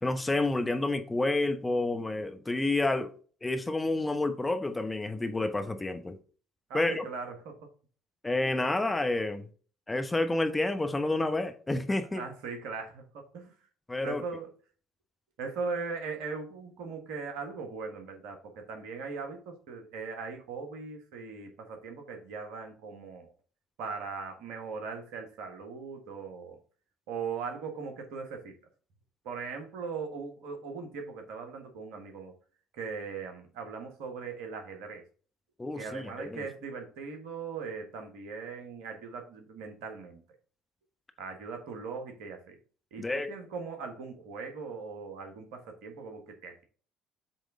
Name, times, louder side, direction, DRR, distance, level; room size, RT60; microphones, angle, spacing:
voice 1, 0.0-3.1 3.4-6.2 6.7-7.0 8.2-9.4 9.9-12.2 13.9-14.2 35.6-36.4 43.0-43.3, left 2 dB, 15° left, 1.0 m, -29 dB
voice 2, 6.7-7.6 12.1-13.5 14.0-14.5 15.4-23.3 23.8-26.6 27.1-28.5 29.2-32.3 32.7-35.0 35.7-40.2 41.2-42.5 42.9-46.6, right 5 dB, 70° right, 1.4 m, -39 dB
7.5 x 3.5 x 3.7 m
hypercardioid pair, 55°, 0 cm